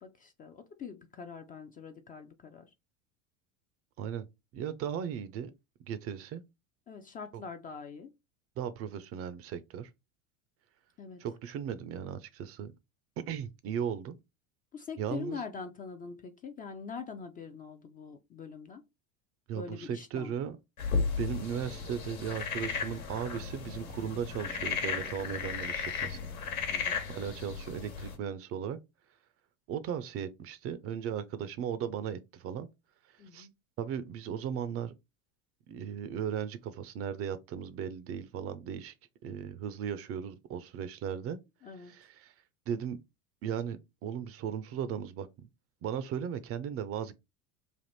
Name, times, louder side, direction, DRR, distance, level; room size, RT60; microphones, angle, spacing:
voice 1, 0.0-2.7 6.9-8.1 11.0-11.2 14.7-18.8 19.5-20.3 26.7-27.0 33.2-33.5 41.6-41.9, left 5 dB, 20° left, 0.4 m, -43 dB
voice 2, 4.5-5.5 5.8-6.4 7.3-7.4 8.6-9.9 11.2-12.7 13.2-14.2 15.0-15.4 19.5-20.6 21.2-26.2 27.1-28.8 29.7-32.7 33.3-33.5 33.8-34.9 35.7-38.9 39.2-41.4 41.8-42.3 42.7-43.0 43.4-45.5 45.8-47.1, right 8 dB, 35° right, 0.5 m, -37 dB
sound 1, 20.8-28.1, left 5 dB, 85° left, 1.3 m, -35 dB
3.3 x 2.5 x 4.0 m
hypercardioid pair, 90°, 41 cm